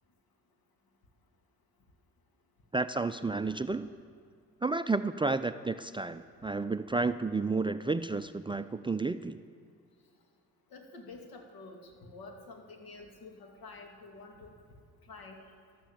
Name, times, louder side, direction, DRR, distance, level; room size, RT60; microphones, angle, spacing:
voice 1, 2.7-3.9 4.6-9.4, right 3 dB, 15° right, 10 dB, 0.5 m, -31 dB
voice 2, 10.7-14.5 15.1-15.4, left 3 dB, 65° left, 3 dB, 2.6 m, -49 dB
13.0 x 13.0 x 7.2 m, 2.1 s
hypercardioid pair, 60°, 38 cm